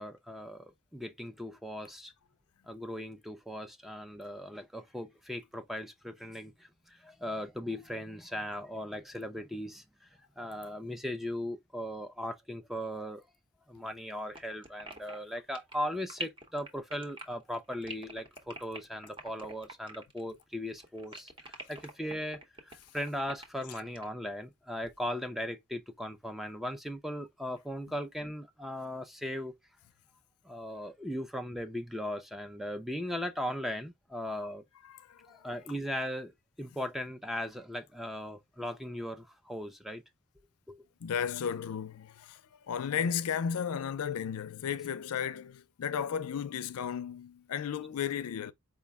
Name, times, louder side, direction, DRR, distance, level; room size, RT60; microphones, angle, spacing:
voice 1, 0.0-2.1 2.7-9.8 10.4-13.2 13.7-29.6 30.4-34.6 35.3-40.0 40.7-40.8 44.8-44.9, equal, ahead, 0.3 m, -38 dB
sound 1, 14.3-20.4 20.7-24.1, right 1 dB, 25° right, 0.8 m, -45 dB
voice 2, 34.8-35.5 41.0-42.4 42.7-48.5, left 7 dB, 90° left, 0.4 m, -34 dB
4.7 x 2.1 x 3.3 m
head